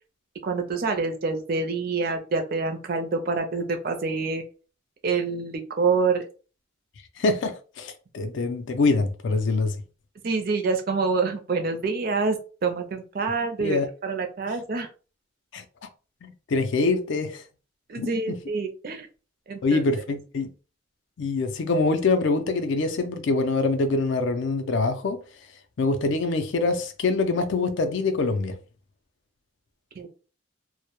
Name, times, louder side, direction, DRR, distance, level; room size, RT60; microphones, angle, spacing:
voice 1, 0.4-4.4 5.0-6.3 10.2-14.9 17.9-19.1 19.5-19.8 30.0-30.1, right 4 dB, 45° right, 0.4 m, -26 dB
voice 2, 7.2-9.8 13.6-13.9 15.5-15.6 16.2-17.4 18.0-18.4 19.6-20.5 21.2-25.2 25.8-28.6, left 3 dB, 60° left, 0.4 m, -24 dB
2.1 x 2.1 x 2.9 m
head